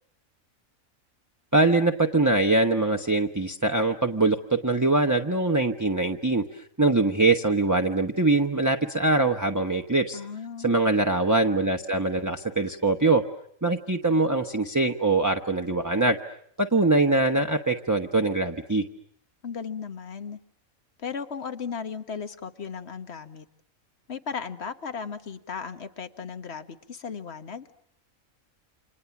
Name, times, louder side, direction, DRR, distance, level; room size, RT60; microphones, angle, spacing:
voice 1, 1.5-6.4 6.8-10.2 10.6-13.2 13.6-16.2 16.6-18.8, right 2 dB, 15° right, 4 dB, 1.1 m, -23 dB
voice 2, 10.1-10.7 19.4-20.4 21.0-23.5 24.1-27.7, left 6 dB, 50° left, 10 dB, 1.7 m, -36 dB
30.0 x 26.5 x 7.2 m, 0.68 s
omnidirectional pair, 1.4 m